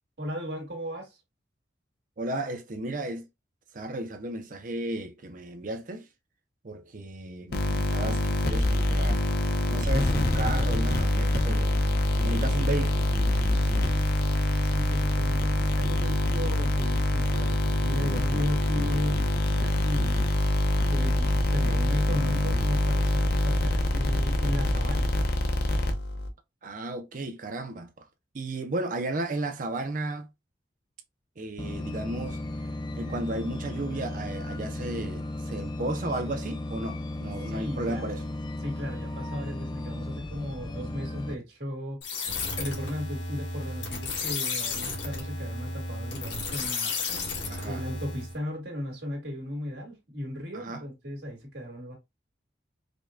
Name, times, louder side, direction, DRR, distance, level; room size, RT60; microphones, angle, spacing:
voice 1, 0.2-1.2 14.6-20.2 20.9-25.1 37.4-38.0 38.6-42.0 42.5-46.9 47.6-51.9, equal, 60° right, 1.8 m, -36 dB
voice 2, 2.2-3.3 3.7-6.1 6.6-9.2 9.7-11.8 12.2-13.1 13.5-14.0 26.6-28.1 28.3-30.3 31.4-32.4 33.0-38.2 46.8-47.0 47.5-47.8 50.5-50.8, right 2 dB, 45° right, 0.5 m, -34 dB
sound 1, 7.5-26.3, left 1 dB, 60° left, 0.7 m, -25 dB
sound 2, 31.6-41.4, left 1 dB, 25° left, 0.4 m, -35 dB
sound 3, 42.0-48.4, left 3 dB, 85° left, 1.6 m, -33 dB
5.0 x 2.2 x 2.4 m
head